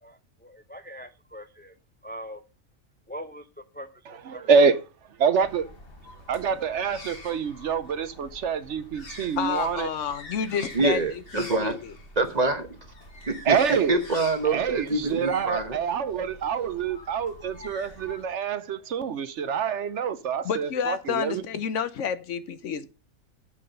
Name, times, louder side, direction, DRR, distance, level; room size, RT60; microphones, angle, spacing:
voice 1, 0.0-1.7 2.0-2.4 3.1-4.7, equal, 15° left, 0.4 m, -42 dB
voice 2, 4.3-4.8 5.2-5.7 6.3-9.9 13.5-14.0 14.5-21.4, right 6 dB, 65° right, 1.0 m, -26 dB
sound 1, 5.4-18.2, left 2 dB, 45° left, 2.0 m, -45 dB
voice 3, 9.4-11.9 20.4-22.9, left 7 dB, 70° left, 1.1 m, -30 dB
voice 4, 10.7-11.8 12.2-12.8 13.3-15.8, right 3 dB, 35° right, 1.1 m, -26 dB
7.6 x 5.8 x 6.5 m
omnidirectional pair, 1.4 m